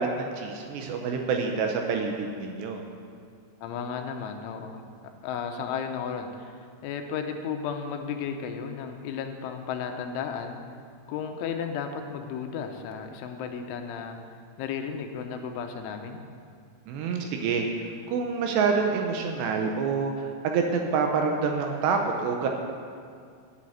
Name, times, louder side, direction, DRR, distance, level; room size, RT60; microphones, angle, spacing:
voice 1, 0.0-2.8 16.9-17.7 18.1-22.5, right 5 dB, 80° right, 3 dB, 2.8 m, -27 dB
voice 2, 3.6-4.8 5.2-10.6 11.1-14.2 14.6-16.2, left 6 dB, 85° left, 5 dB, 3.2 m, -34 dB
9.4 x 7.4 x 8.8 m, 2.2 s
omnidirectional pair, 5.5 m